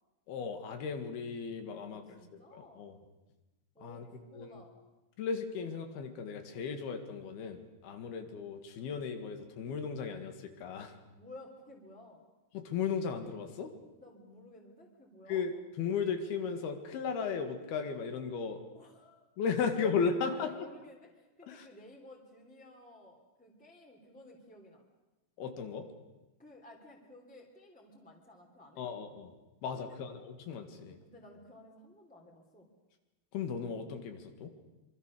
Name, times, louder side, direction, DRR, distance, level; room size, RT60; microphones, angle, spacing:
voice 1, 0.3-2.0 2.5-3.0 3.8-4.1 4.3-4.6 5.2-10.9 12.5-13.7 15.3-18.6 19.4-20.5 21.5-21.7 25.4-25.8 28.8-29.3 29.6-31.0 33.3-34.5, left 6 dB, 80° left, 6 dB, 3.9 m, -36 dB
voice 2, 1.7-2.9 3.7-4.7 11.1-12.2 13.9-15.4 18.7-19.3 20.0-24.8 26.4-28.8 29.8-30.0 31.0-32.7, left 1 dB, ahead, 0 dB, 2.6 m, -55 dB
25.5 x 24.5 x 6.6 m, 1.1 s
omnidirectional pair, 4.5 m